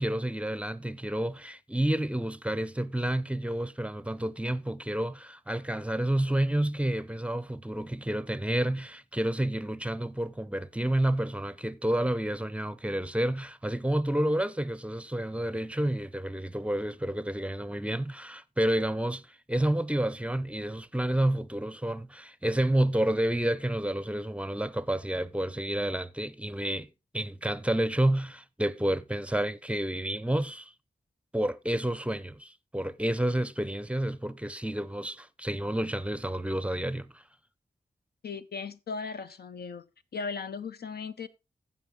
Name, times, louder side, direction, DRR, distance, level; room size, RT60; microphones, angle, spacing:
voice 1, 0.0-26.9 27.1-30.7 31.3-37.2, right 1 dB, 5° right, 0.6 m, -30 dB
voice 2, 38.2-39.9 40.1-41.3, left 5 dB, 75° left, 0.8 m, -37 dB
15.0 x 5.6 x 3.8 m
wide cardioid pair, 80°, 16 cm